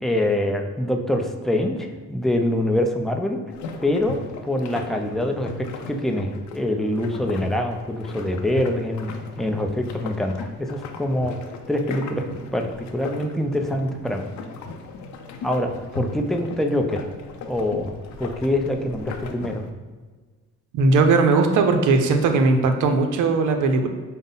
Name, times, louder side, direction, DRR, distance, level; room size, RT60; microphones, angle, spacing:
voice 1, 0.0-3.4 3.8-4.2 4.4-11.3 11.7-12.2 12.5-14.3 15.4-17.0 17.5-17.9 18.2-19.6, left 1 dB, ahead, 3 dB, 0.4 m, -24 dB
sound 1, 3.5-19.7, left 4 dB, 70° left, 0.6 m, -38 dB
voice 2, 20.7-23.9, right 3 dB, 80° right, 5 dB, 0.5 m, -18 dB
5.3 x 2.1 x 3.9 m, 1.4 s
cardioid pair, 90°, 30 cm